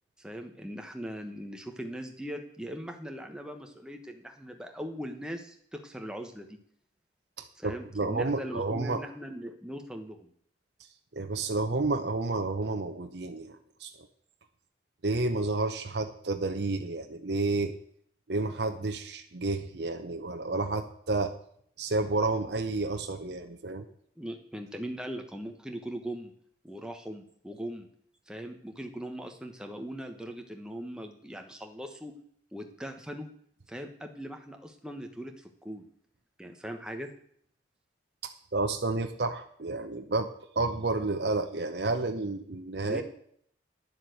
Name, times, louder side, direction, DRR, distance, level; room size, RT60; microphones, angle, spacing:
voice 1, 0.2-6.6 7.6-10.3 24.2-26.3 26.6-27.9 28.3-32.2 32.5-33.3 33.7-35.9 36.4-37.1 42.8-43.0, equal, 5° right, 4 dB, 1.2 m, -40 dB
voice 2, 7.4-9.0 11.1-13.9 15.0-17.7 18.3-21.3 21.8-23.8 38.2-40.3 40.6-43.0, right 3 dB, 65° right, 5 dB, 0.8 m, -30 dB
10.5 x 7.3 x 7.9 m, 0.63 s
head